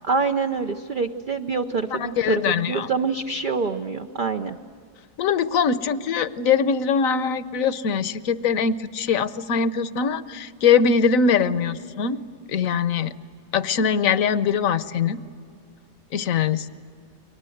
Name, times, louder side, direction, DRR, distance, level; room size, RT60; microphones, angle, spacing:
voice 1, 0.0-4.6, right 4 dB, 50° right, 5 dB, 0.6 m, -26 dB
voice 2, 1.9-2.9 5.2-12.2 12.5-13.1 13.5-15.2 16.1-16.7, left 6 dB, 60° left, 14 dB, 1.1 m, -22 dB
30.0 x 23.0 x 7.9 m, 2.3 s
omnidirectional pair, 1.7 m